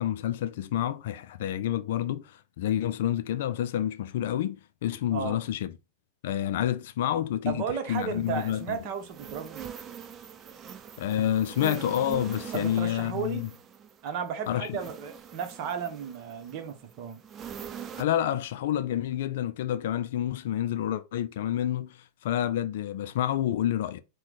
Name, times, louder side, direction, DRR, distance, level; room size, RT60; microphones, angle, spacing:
voice 1, 0.0-5.7 6.2-7.6 7.9-8.8 11.0-13.5 14.5-14.8 18.0-24.0, left 11 dB, 55° left, 0.4 m, -29 dB
voice 2, 7.5-9.7 12.5-13.5 14.0-17.2, right 6 dB, 40° right, 0.9 m, -34 dB
sound 1, 7.9-18.0, right 8 dB, 25° right, 0.5 m, -43 dB
4.4 x 2.2 x 4.0 m
figure-of-eight pair, 90°, 0 cm